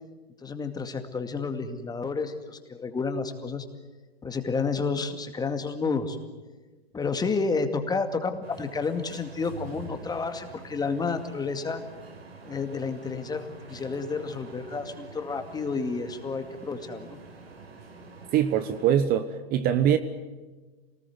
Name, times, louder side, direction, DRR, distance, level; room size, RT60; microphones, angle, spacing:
voice 1, 0.4-3.6 4.2-6.2 6.9-11.8 12.4-17.2, left 4 dB, 15° left, 7 dB, 2.2 m, -30 dB
sound 1, 8.4-18.9, right 3 dB, 75° right, 6.5 m, -46 dB
voice 2, 18.3-20.0, right 10 dB, 30° right, 10 dB, 1.2 m, -23 dB
27.0 x 19.5 x 9.5 m, 1.3 s
figure-of-eight pair, 105°, 30 cm